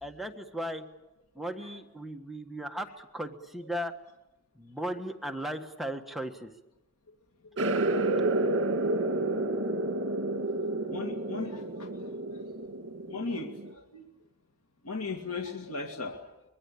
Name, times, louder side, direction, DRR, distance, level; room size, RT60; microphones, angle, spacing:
voice 1, 0.0-0.8 1.3-3.9 4.5-6.5, equal, ahead, 3 dB, 1.5 m, -36 dB
sound 1, 7.6-13.7, right 2 dB, 60° right, 1.8 m, -30 dB
voice 2, 10.9-11.9 12.3-12.4 13.1-13.5 13.9-14.1 14.9-16.2, left 3 dB, 90° left, 2 dB, 2.4 m, -36 dB
24.5 x 22.0 x 8.6 m, 0.94 s
head